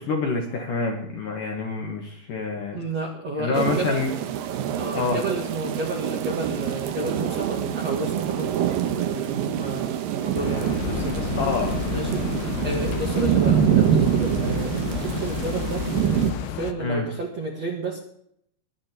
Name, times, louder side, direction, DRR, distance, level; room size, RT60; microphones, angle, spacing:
voice 1, 0.0-2.8 3.4-4.1 4.9-5.2 11.4-11.7 16.8-17.1, left 4 dB, 55° left, 1 dB, 2.6 m, -27 dB
voice 2, 2.7-4.0 4.8-11.3 11.9-12.3 12.6-15.9 16.1-18.0, right 2 dB, 50° right, -1 dB, 2.1 m, -31 dB
sound 1, 3.5-16.3, right 10 dB, 80° right, 2.0 m, -25 dB
sound 2, 10.4-16.7, left 12 dB, 80° left, 3.3 m, -30 dB
22.5 x 9.1 x 4.5 m, 0.69 s
omnidirectional pair, 5.7 m